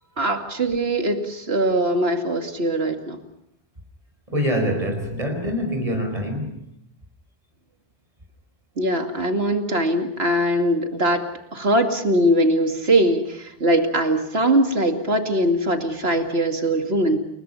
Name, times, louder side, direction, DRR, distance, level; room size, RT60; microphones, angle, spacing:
voice 1, 0.2-3.2 8.8-11.2 11.5-17.2, right 1 dB, 90° right, 4 dB, 2.6 m, -21 dB
voice 2, 4.3-6.6, equal, 35° right, 3 dB, 4.8 m, -25 dB
30.0 x 22.5 x 5.6 m, 0.76 s
omnidirectional pair, 1.0 m